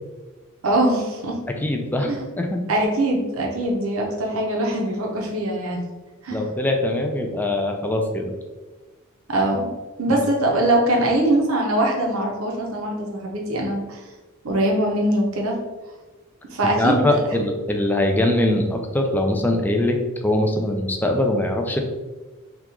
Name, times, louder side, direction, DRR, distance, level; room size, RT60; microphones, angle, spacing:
voice 1, 0.6-1.4 2.1-2.2 2.7-5.8 6.2-6.4 9.3-9.7 10.0-14.1 14.4-15.6 16.5-17.2, right 1 dB, 70° right, 0 dB, 0.7 m, -22 dB
voice 2, 1.6-2.1 2.3-2.6 6.3-8.3 10.1-10.2 16.8-20.0 20.2-21.8, left 1 dB, 10° left, 3 dB, 0.3 m, -22 dB
2.9 x 2.3 x 3.6 m, 1.2 s
head